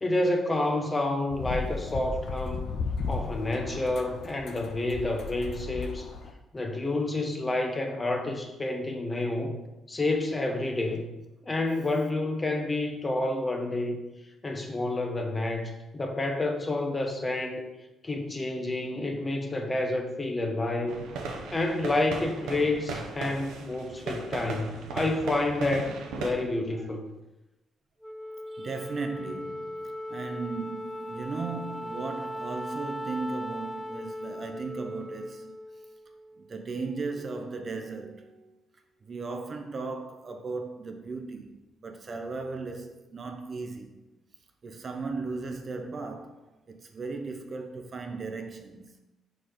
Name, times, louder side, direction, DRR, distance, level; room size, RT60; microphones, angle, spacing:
voice 1, 0.0-2.7 3.1-6.1 6.5-9.6 9.9-11.1 11.4-14.0 14.4-17.6 18.0-21.0 21.5-27.1, left 2 dB, 25° left, 0.9 m, -29 dB
sound 1, 1.3-6.3, left 4 dB, 70° left, 0.6 m, -35 dB
sound 2, 20.9-26.3, right 4 dB, 85° right, 0.8 m, -37 dB
Wind instrument woodwind instrument, 28.0-36.6, equal, 5° left, 0.3 m, -38 dB
voice 2, 28.5-35.6 36.4-38.6 39.0-44.0 44.6-48.9, right 4 dB, 40° right, 0.6 m, -37 dB
4.5 x 4.2 x 5.0 m
cardioid pair, 90°, 0 cm